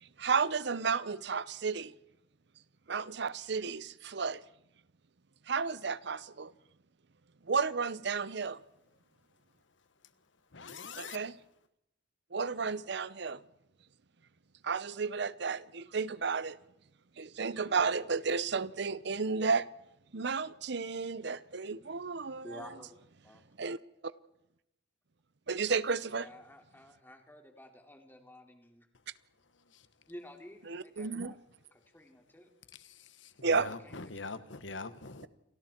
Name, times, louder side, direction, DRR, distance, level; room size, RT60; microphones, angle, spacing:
voice 1, 0.0-1.9 2.9-4.4 5.5-6.5 7.5-8.6 11.0-11.3 12.3-13.4 14.6-16.6 17.2-19.7 20.1-22.6 23.6-23.8 24.0-24.1 25.5-26.3 30.7-31.4 33.4-33.7, right 5 dB, 65° right, 0.8 m, -32 dB
voice 2, 10.5-11.2 29.4-29.9 32.7-35.3, left 4 dB, 85° left, 1.5 m, -44 dB
voice 3, 22.4-23.0 23.2-23.4 26.0-28.9 30.1-31.4 31.7-32.5 33.6-33.9, left 1 dB, 10° left, 3.0 m, -51 dB
29.5 x 23.5 x 4.5 m
head